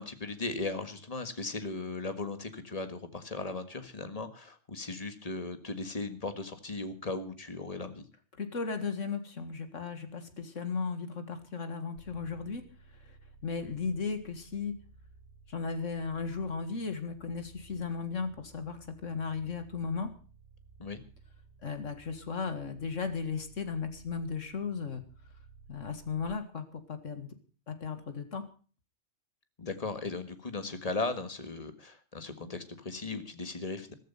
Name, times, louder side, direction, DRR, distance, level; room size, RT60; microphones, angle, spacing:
voice 1, 0.0-8.0 20.8-21.0 29.6-33.9, left 3 dB, 30° left, 9 dB, 1.7 m, -37 dB
voice 2, 8.4-12.6 13.0-13.1 13.4-14.8 15.5-20.1 21.6-25.0 25.7-27.3 27.7-28.5, left 5 dB, 80° left, 9 dB, 2.2 m, -36 dB
sound 1, 12.0-26.3, right 4 dB, 55° right, 7.2 m, -57 dB
14.5 x 14.0 x 5.7 m, 0.39 s
omnidirectional pair, 1.3 m